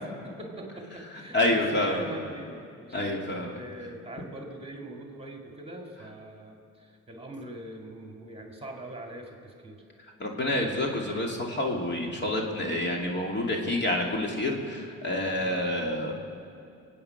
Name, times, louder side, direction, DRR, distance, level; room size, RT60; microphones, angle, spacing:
voice 1, 0.0-9.8 15.3-16.0, right 1 dB, 20° right, 2 dB, 2.1 m, -43 dB
voice 2, 1.3-2.1 2.9-3.6 10.2-16.1, left 1 dB, 35° left, 0 dB, 2.5 m, -28 dB
22.0 x 8.8 x 5.9 m, 2.6 s
cardioid pair, 90°, 30 cm